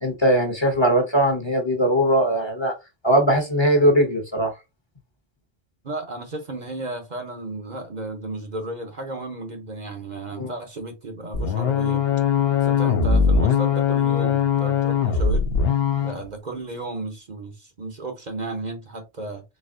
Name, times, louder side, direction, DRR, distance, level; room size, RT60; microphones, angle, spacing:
voice 1, 0.0-2.7 3.0-4.5 10.4-10.5, right 1 dB, 30° left, 0.9 m, -20 dB
voice 2, 5.8-12.0 12.6-15.5 16.0-19.4, right 2 dB, 45° right, 0.9 m, -33 dB
sound 1, 11.3-16.2, left 6 dB, 70° left, 0.9 m, -21 dB
4.2 x 3.3 x 2.6 m
omnidirectional pair, 1.1 m